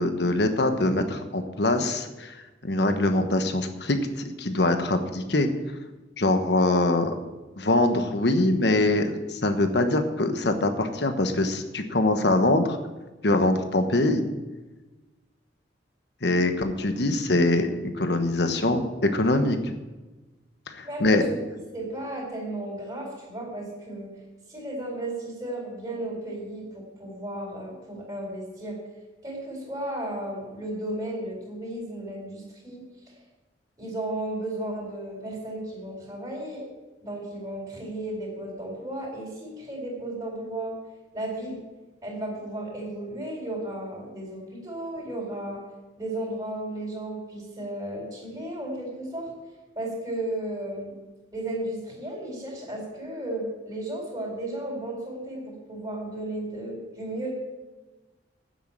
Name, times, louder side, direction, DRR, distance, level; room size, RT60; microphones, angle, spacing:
voice 1, 0.0-2.4 2.6-5.5 6.2-7.1 7.6-12.8 13.2-14.2 16.2-19.7 20.7-21.2, left 2 dB, 65° left, 7 dB, 1.2 m, -23 dB
voice 2, 20.8-21.5 21.7-24.1 24.5-28.8 29.2-33.2 33.8-36.6 37.0-40.7 41.1-41.6 42.0-45.6 46.0-49.3 49.7-50.9 51.3-57.3, right 1 dB, 20° right, -2 dB, 4.4 m, -34 dB
9.5 x 8.2 x 8.8 m, 1.2 s
head